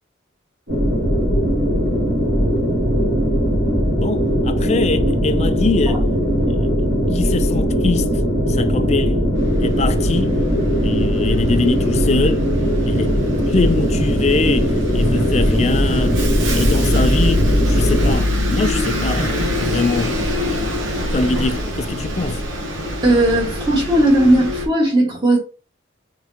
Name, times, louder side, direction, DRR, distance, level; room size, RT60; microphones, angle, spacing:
sound 1, 0.7-18.2, equal, 60° right, 2.6 m, -19 dB
voice 1, 4.0-6.0 6.5-6.8 7.1-8.2 8.5-9.3 9.6-10.4 10.8-12.4 12.8-13.2 13.5-16.2 16.5-20.6 21.1-22.4, left 3 dB, 35° left, 0.4 m, -23 dB
Bus, 9.4-24.7, left 1 dB, 80° right, 1.0 m, -24 dB
voice 2, 23.0-25.4, right 1 dB, 25° right, 1.6 m, -16 dB
4.9 x 3.6 x 2.8 m
head